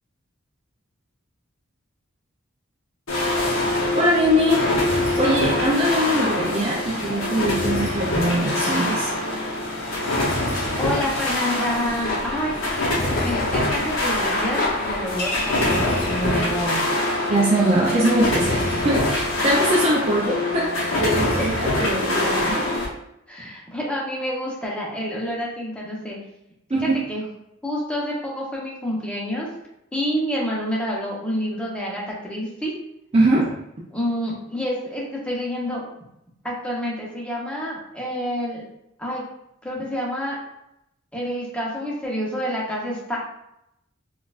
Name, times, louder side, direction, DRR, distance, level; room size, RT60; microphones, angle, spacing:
sound 1, 3.1-22.9, left 1 dB, 80° left, 0.8 m, -24 dB
voice 1, 3.9-4.7 5.2-9.1 17.3-22.6 26.7-27.0 33.1-33.6, right 1 dB, 30° right, -4 dB, 0.4 m, -22 dB
voice 2, 10.8-16.8 21.4-21.5 23.3-26.2 26.8-27.2 27.6-29.5 29.9-32.7 33.9-35.8 36.4-38.6 39.0-39.3 39.6-40.4 41.1-43.2, equal, 5° left, -4 dB, 0.8 m, -28 dB
sound 2, 11.6-16.7, left 2 dB, 45° left, 0.8 m, -30 dB
4.4 x 2.4 x 2.4 m, 0.82 s
head